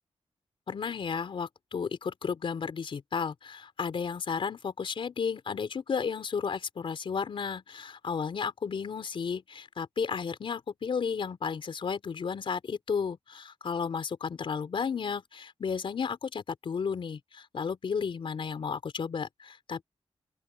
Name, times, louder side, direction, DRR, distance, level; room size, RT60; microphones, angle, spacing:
voice 1, 0.7-19.8, left 6 dB, 55° left, 4.3 m, -33 dB
open air
wide cardioid pair, 170°, 10 cm